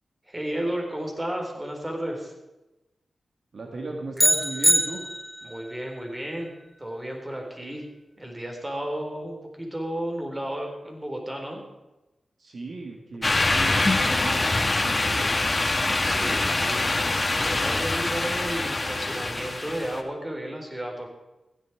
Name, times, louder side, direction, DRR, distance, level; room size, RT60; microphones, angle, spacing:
voice 1, 0.3-2.3 5.4-6.5 6.8-7.9 8.2-11.6 16.0-21.1, right 1 dB, 20° right, 1 dB, 3.9 m, -33 dB
voice 2, 3.5-5.0 12.4-15.4, right 3 dB, 65° right, 1 dB, 2.0 m, -36 dB
sound 1, 4.2-5.6, equal, ahead, 0.7 m, -22 dB
sound 2, 13.2-20.0, left 2 dB, 35° left, 1.5 m, -24 dB
15.5 x 11.0 x 4.8 m, 1.0 s
cardioid pair, 50°, 0 cm